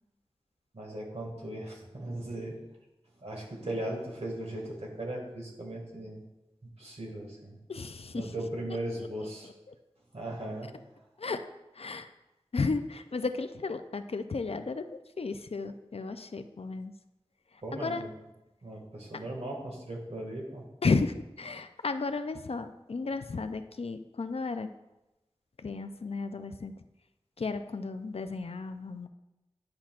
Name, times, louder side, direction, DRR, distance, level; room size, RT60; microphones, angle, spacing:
voice 1, 0.7-2.6 3.2-6.2 6.8-7.6 8.1-9.5 10.1-10.7 17.6-18.1 18.6-20.6, right 1 dB, 80° right, -2 dB, 1.9 m, -38 dB
voice 2, 7.7-8.3 9.2-9.7 11.2-11.5 11.7-12.1 12.5-16.9 17.5-18.0 20.8-24.7 25.6-26.7 27.4-29.1, left 4 dB, 65° left, 9 dB, 0.4 m, -33 dB
10.5 x 5.8 x 2.4 m, 0.98 s
wide cardioid pair, 50°, 11 cm